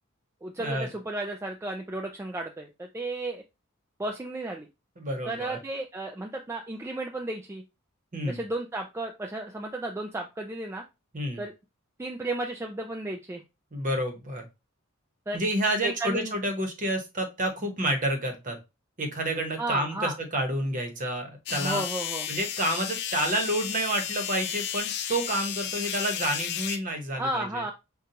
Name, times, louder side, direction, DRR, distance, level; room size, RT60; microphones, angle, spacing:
voice 1, 0.4-3.4 4.0-4.7 5.3-7.6 8.3-10.8 11.4-11.5 12.0-13.4 15.3-15.4 15.8-16.3 19.6-20.1 21.5-22.3 27.2-27.7, right 2 dB, 10° right, 2 dB, 0.3 m, -33 dB
voice 2, 5.0-5.6 8.1-8.4 11.1-11.4 13.7-14.5 15.3-18.6 19.0-21.8 22.3-27.6, right 1 dB, 40° right, 5 dB, 0.9 m, -29 dB
sound 1, 21.5-26.8, left 10 dB, 55° left, 0.4 m, -33 dB
5.2 x 2.3 x 2.8 m, 0.25 s
head